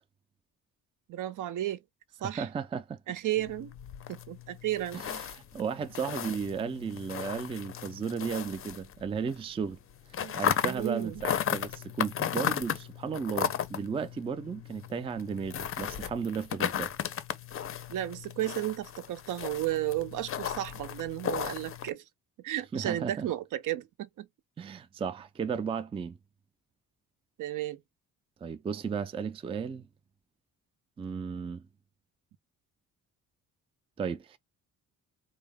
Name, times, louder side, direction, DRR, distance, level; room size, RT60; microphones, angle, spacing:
voice 1, 1.1-1.8 2.2-2.5 3.1-3.7 4.1-5.0 10.2-10.4 10.6-11.2 17.9-22.0 22.4-24.3 27.4-27.8, right 13 dB, 65° right, 0.5 m, -33 dB
voice 2, 2.2-3.0 4.9-9.8 10.3-16.9 22.7-23.3 24.6-26.2 28.4-29.9 31.0-31.6 34.0-34.4, right 6 dB, 20° right, 0.3 m, -34 dB
sound 1, 3.4-9.4 9.6-21.9, left 9 dB, 40° left, 0.5 m, -35 dB
3.9 x 2.0 x 3.4 m
cardioid pair, 110°, 34 cm